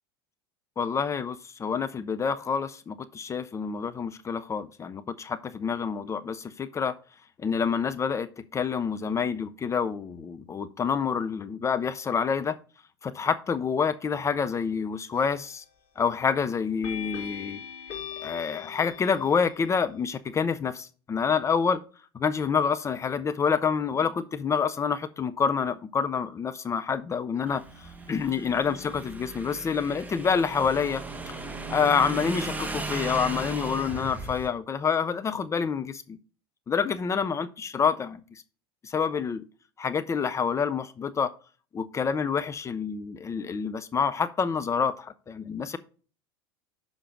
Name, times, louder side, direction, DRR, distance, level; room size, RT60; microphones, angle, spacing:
voice 1, 0.8-6.9 7.4-12.6 13.0-15.6 16.0-17.6 18.2-21.8 22.1-31.0 31.7-36.2 36.7-38.4 38.8-39.4 39.8-41.3 41.7-45.8, left 6 dB, 20° left, 0.5 m, -27 dB
sound 1, 15.1-15.6 16.8-19.6, left 8 dB, 50° left, 3.7 m, -40 dB
Motorcycle / Engine, 27.5-34.5, right 2 dB, 10° right, 1.1 m, -36 dB
6.7 x 5.1 x 5.8 m
figure-of-eight pair, 80°, 14 cm